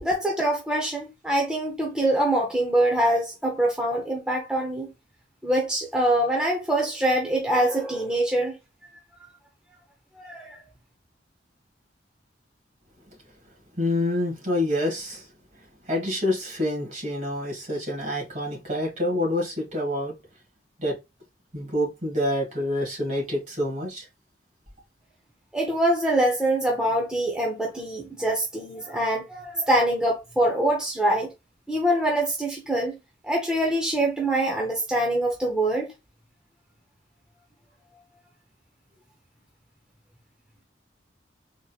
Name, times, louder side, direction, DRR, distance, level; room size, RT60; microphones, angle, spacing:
voice 1, 0.0-4.9 5.4-8.6 10.1-10.6 25.5-31.3 31.7-33.0 33.2-35.9, right 1 dB, 5° right, 0.6 m, -24 dB
voice 2, 13.8-15.3 15.8-20.1 20.8-21.0 21.5-24.1, left 1 dB, 40° right, 1.6 m, -27 dB
3.7 x 2.8 x 2.3 m
head